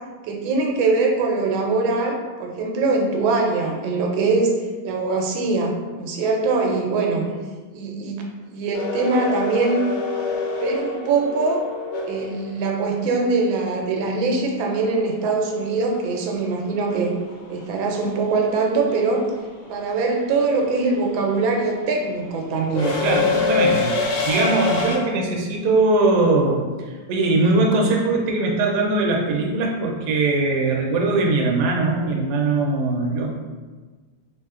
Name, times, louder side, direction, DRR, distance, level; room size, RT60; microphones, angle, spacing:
voice 1, 0.2-4.5 4.8-7.3 7.7-8.2 8.5-9.8 10.6-11.6 12.1-17.1 17.5-19.3 19.7-22.9, right 3 dB, 90° right, 1 dB, 1.3 m, -22 dB
sound 1, 8.7-12.8 15.2-15.3 16.6-16.9 17.2-25.0, left 4 dB, 70° left, 1.1 m, -26 dB
voice 2, 23.0-26.7 27.1-33.3, right 2 dB, 70° right, -1 dB, 1.0 m, -21 dB
3.3 x 2.7 x 2.4 m, 1.3 s
omnidirectional pair, 2.1 m